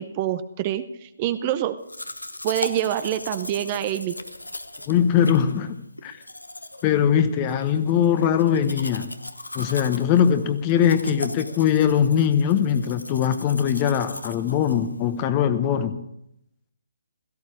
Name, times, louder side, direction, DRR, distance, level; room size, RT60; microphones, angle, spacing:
voice 1, 0.0-1.8 2.4-4.2, right 12 dB, 30° right, 12 dB, 0.8 m, -26 dB
Domestic sounds home sounds, 1.9-15.3, left 1 dB, 90° left, 1.1 m, -38 dB
voice 2, 4.9-5.8 6.0-6.2 6.8-9.1 9.5-16.0, left 8 dB, 30° left, 10 dB, 1.2 m, -21 dB
17.0 x 14.5 x 5.0 m, 0.78 s
figure-of-eight pair, 140°, 0 cm